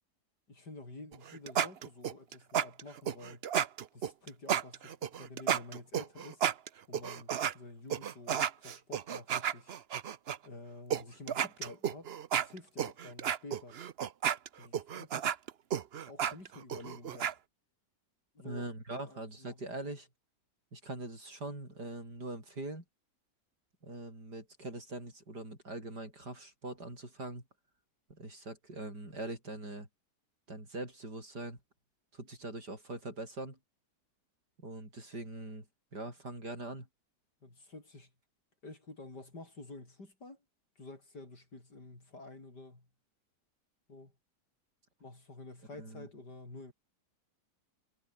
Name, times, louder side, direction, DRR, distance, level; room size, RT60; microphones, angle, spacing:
voice 1, 0.5-3.4 3.9-6.4 6.9-9.7 10.4-13.8 14.6-15.4 16.1-17.4 18.4-18.7 19.0-19.6 37.4-38.1 38.6-40.4 40.8-42.9 43.9-44.1 45.0-46.7, left 2 dB, 80° left, 7.0 m, -50 dB
sound 1, 1.1-7.5 7.9-10.4 10.9-11.0 11.3-17.3, right 9 dB, 50° right, 0.8 m, -32 dB
voice 2, 18.4-20.1 20.7-22.8 23.8-27.4 28.1-29.9 30.5-31.6 32.1-33.6 34.6-35.7 35.9-36.9 45.8-46.1, right 2 dB, 75° right, 8.8 m, -42 dB
omnidirectional pair, 1.8 m